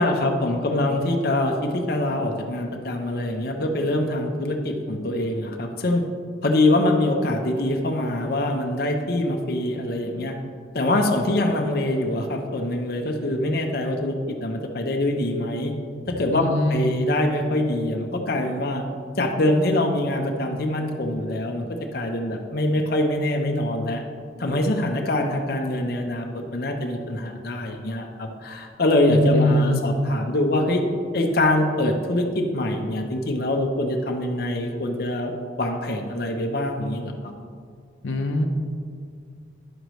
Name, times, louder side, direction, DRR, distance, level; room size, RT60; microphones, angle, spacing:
voice 1, 0.0-6.0 6.4-10.3 10.7-15.7 16.1-18.8 19.2-24.0 24.4-30.8 31.1-35.3 35.6-37.3, left 1 dB, 55° left, 3 dB, 0.7 m, -24 dB
voice 2, 16.3-17.0 29.1-29.8 38.0-38.5, left 1 dB, 90° left, 4 dB, 0.6 m, -22 dB
10.0 x 6.6 x 3.1 m, 2.1 s
head